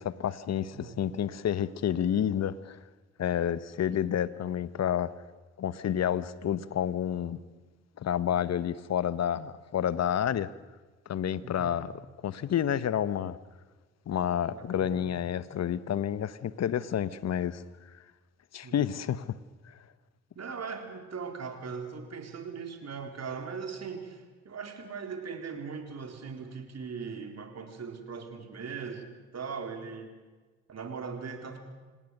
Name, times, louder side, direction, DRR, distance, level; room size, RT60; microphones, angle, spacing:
voice 1, 0.0-2.8 3.2-5.1 5.6-7.4 8.0-10.5 11.1-11.9 12.2-13.4 14.1-17.6 18.5-19.4, left 9 dB, 50° left, 1.1 m, -29 dB
voice 2, 14.5-15.1 18.6-18.8 20.4-29.1 29.3-30.1 30.7-31.6, right 5 dB, 50° right, 4.3 m, -39 dB
27.0 x 18.5 x 6.6 m
hypercardioid pair, 50°, 34 cm